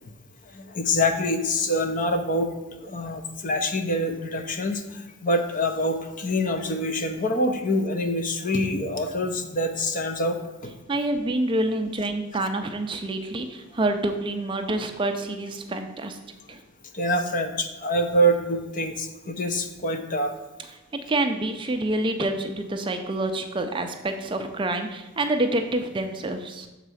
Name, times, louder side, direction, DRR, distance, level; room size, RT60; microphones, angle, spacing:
voice 1, 0.5-2.5 2.8-10.4 10.6-10.7 16.9-20.3, equal, 35° left, 6 dB, 0.6 m, -25 dB
voice 2, 10.9-16.2 16.5-16.6 21.1-26.7, right 2 dB, 25° right, 6 dB, 0.4 m, -27 dB
6.6 x 4.0 x 6.2 m, 1.1 s
head